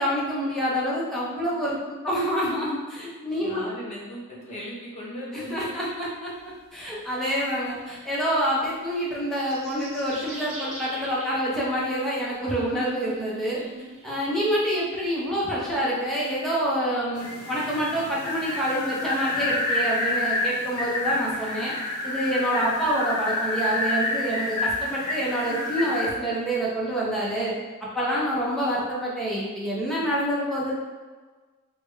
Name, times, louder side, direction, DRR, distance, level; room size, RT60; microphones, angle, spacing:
voice 1, 0.0-3.6 5.3-6.3 6.7-13.6 14.0-21.7 22.0-27.5 27.9-30.7, equal, ahead, -7 dB, 0.7 m, -27 dB
voice 2, 3.4-5.7 13.5-14.0, equal, 30° left, -5 dB, 0.8 m, -38 dB
sound 1, 6.3-9.0 9.2-11.4 12.1-12.4 12.7-14.9 15.5-16.1, right 2 dB, 30° right, 0.8 m, -43 dB
Cloud Forest Frogs, 17.2-26.1, left 2 dB, 85° left, 0.7 m, -28 dB
3.4 x 2.2 x 3.3 m, 1.3 s
head